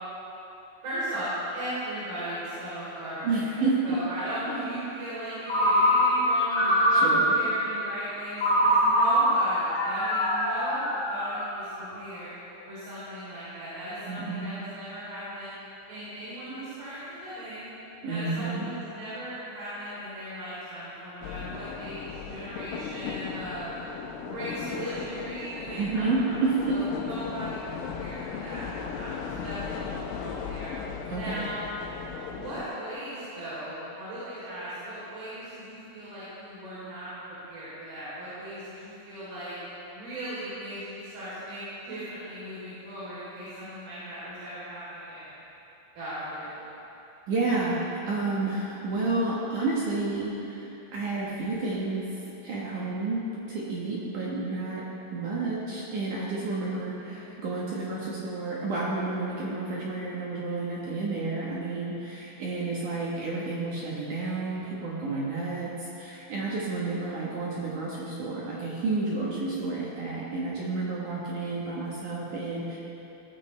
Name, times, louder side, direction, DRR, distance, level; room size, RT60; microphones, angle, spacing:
voice 1, 0.8-12.3 12.7-15.5 15.9-17.7 18.1-23.7 24.2-26.4 26.7-30.7 31.1-31.6 32.2-39.5 39.9-45.3 45.9-46.5 55.5-55.9 57.0-57.2 60.8-61.0 65.0-65.2, equal, 55° right, -12 dB, 5.1 m, -37 dB
voice 2, 3.2-4.0 6.9-7.3 14.1-14.5 18.0-18.7 25.8-26.8 31.1-31.4 47.3-52.1 52.4-53.2 53.5-54.8 55.1-72.8, right 3 dB, 70° right, -5 dB, 1.9 m, -30 dB
Ringtone, 5.5-7.6 8.4-11.7, equal, 60° left, 1.3 m, -23 dB
sound 1, 21.2-32.6, left 6 dB, 80° left, 3.2 m, -37 dB
16.5 x 13.5 x 3.3 m, 3.0 s
omnidirectional pair, 5.6 m